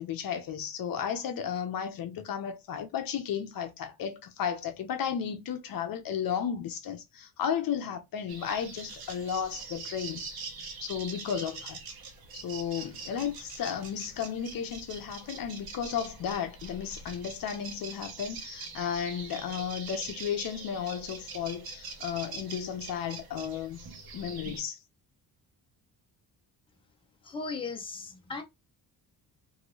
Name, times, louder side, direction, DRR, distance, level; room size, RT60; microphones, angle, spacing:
voice 1, 0.0-11.8 12.3-23.8 24.1-24.8, left 8 dB, 60° left, 0.7 m, -34 dB
sound 1, 8.3-24.6, right 4 dB, 65° right, 0.9 m, -43 dB
voice 2, 27.2-28.4, left 4 dB, 15° left, 0.7 m, -37 dB
2.7 x 2.6 x 3.0 m
cardioid pair, 130°, 38 cm